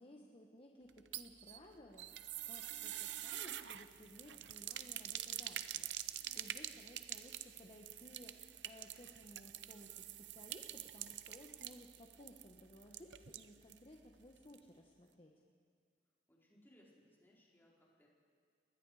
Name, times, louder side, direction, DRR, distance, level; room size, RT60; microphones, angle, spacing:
voice 1, 0.0-15.3, left 1 dB, 30° left, 1 dB, 1.4 m, -59 dB
sound 1, 0.9-13.9 14.1-14.2 14.5-14.6, right 12 dB, 85° right, 0.7 m, -46 dB
voice 2, 16.3-18.1, equal, 15° left, -4 dB, 4.8 m, -67 dB
30.0 x 20.5 x 5.0 m, 2.1 s
head